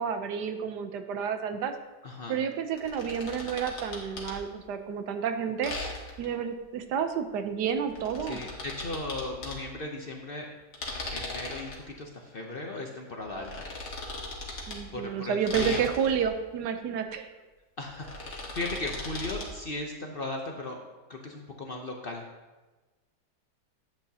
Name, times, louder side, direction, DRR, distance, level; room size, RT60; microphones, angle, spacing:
voice 1, 0.0-1.7 2.3-5.7 6.2-8.4 14.7-17.4, right 7 dB, 85° right, 8 dB, 1.3 m, -30 dB
voice 2, 2.0-2.4 8.2-10.5 11.1-13.7 14.9-15.9 17.8-20.8 21.1-22.2, left 2 dB, 45° left, 1 dB, 0.8 m, -37 dB
sound 1, 2.8-4.4 5.6-6.3 7.7-9.6 10.7-11.8 13.2-14.8 15.5-16.3 17.8-19.5, left 2 dB, 70° left, 2.1 m, -38 dB
11.5 x 8.4 x 2.8 m, 1.2 s
omnidirectional pair, 1.8 m